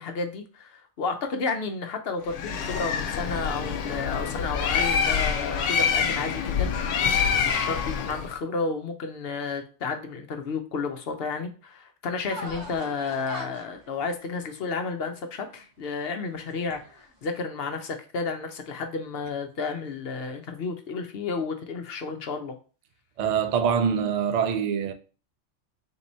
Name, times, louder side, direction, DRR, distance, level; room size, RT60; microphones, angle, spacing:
voice 1, 0.0-22.5, left 4 dB, 60° left, 0.8 m, -32 dB
Bird, 2.3-8.3, left 6 dB, 90° left, 1.0 m, -26 dB
sound 1, 12.3-15.8 16.3-17.2, equal, 20° right, 0.7 m, -42 dB
voice 2, 23.2-24.9, right 7 dB, 60° right, 0.4 m, -24 dB
3.6 x 2.9 x 4.1 m
omnidirectional pair, 1.2 m